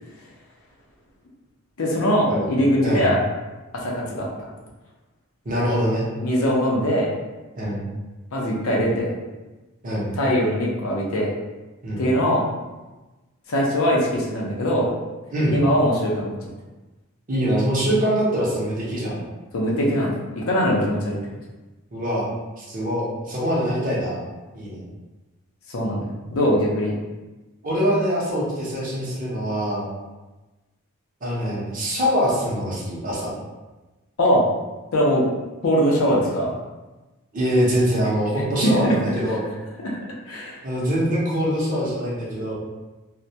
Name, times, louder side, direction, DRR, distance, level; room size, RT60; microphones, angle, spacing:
voice 1, 1.8-3.2 3.7-4.3 6.2-7.1 8.3-9.1 10.2-11.3 12.0-12.5 13.5-14.9 15.5-16.3 19.5-21.2 25.7-26.9 34.2-34.4 34.9-35.2 35.6-36.5 38.6-39.0 39.8-40.0 40.3-40.6, equal, 65° left, -3 dB, 0.5 m, -21 dB
voice 2, 2.3-3.1 5.4-6.1 7.6-7.8 9.8-10.1 11.8-12.0 15.3-15.6 17.3-19.2 21.9-22.2 22.6-24.2 24.5-24.8 27.6-29.9 31.2-33.3 37.3-39.4 40.6-42.5, equal, 35° right, -6 dB, 0.6 m, -23 dB
2.2 x 2.1 x 2.7 m, 1.1 s
head